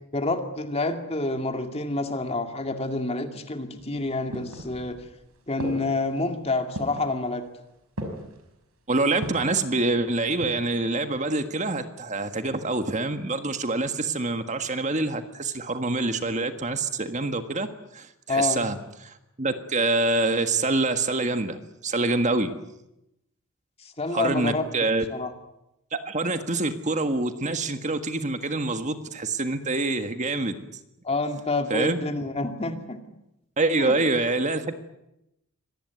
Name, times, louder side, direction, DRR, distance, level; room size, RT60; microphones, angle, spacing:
voice 1, 0.1-5.0 5.5-7.5 18.3-18.6 24.0-24.6 25.1-25.3 31.0-33.0 33.7-34.0, left 2 dB, 30° left, 6 dB, 2.4 m, -28 dB
sound 1, 3.8-5.1 5.6-6.1 6.7-7.2 8.0-8.4 9.2-9.6 10.2-10.8 11.0-11.1, right 1 dB, 90° right, 5.7 m, -36 dB
voice 2, 8.9-17.7 17.9-18.8 19.0-22.5 24.1-25.1 25.9-30.6 31.7-32.0 33.6-34.8, right 2 dB, 35° right, 8 dB, 1.6 m, -26 dB
25.0 x 19.0 x 9.5 m, 0.86 s
head